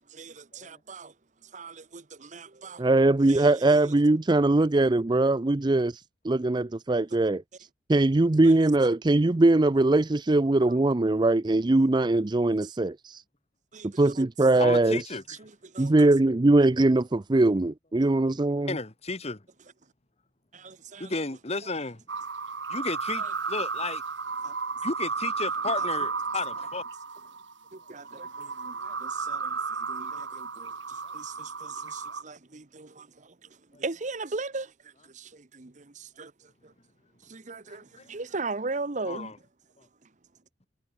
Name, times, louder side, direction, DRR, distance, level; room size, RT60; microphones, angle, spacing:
voice 1, 0.0-2.9 3.3-4.0 8.4-8.7 10.7-10.8 12.6-12.7 13.7-14.3 14.5-14.7 15.3-16.1 19.8-19.9 20.5-21.1 21.6-21.7 23.2-23.3 24.4-24.6 25.8-25.9 27.7-36.7 37.2-39.3 39.8-40.1, right 3 dB, 40° right, 1.0 m, -39 dB
voice 2, 2.8-7.4 7.9-13.2 13.8-15.0 15.8-18.7, right 2 dB, 25° right, 0.5 m, -21 dB
voice 3, 14.6-15.4 18.6-19.5 21.0-22.0 22.7-24.0 24.8-26.8 31.0-31.2 33.7-33.8 37.7-38.1 39.1-39.3 39.8-39.9, left 3 dB, 35° left, 1.8 m, -34 dB
sound 1, 22.1-32.2, right 5 dB, 85° right, 2.4 m, -33 dB
head